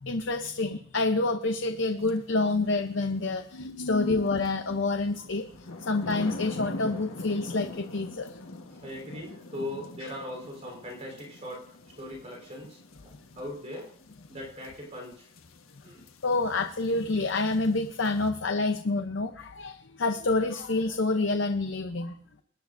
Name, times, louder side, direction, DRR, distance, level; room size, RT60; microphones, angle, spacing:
voice 1, 0.0-5.4 5.8-8.3 10.0-10.1 16.2-22.1, left 3 dB, 60° left, 6 dB, 0.7 m, -28 dB
sound 1, 2.0-2.2 4.4-18.3, left 2 dB, 90° left, 1.3 m, -43 dB
voice 2, 8.7-11.6 12.0-13.9 14.3-15.3 15.8-16.0, left 1 dB, 35° right, 0 dB, 3.8 m, -40 dB
23.5 x 10.5 x 2.6 m, 0.64 s
head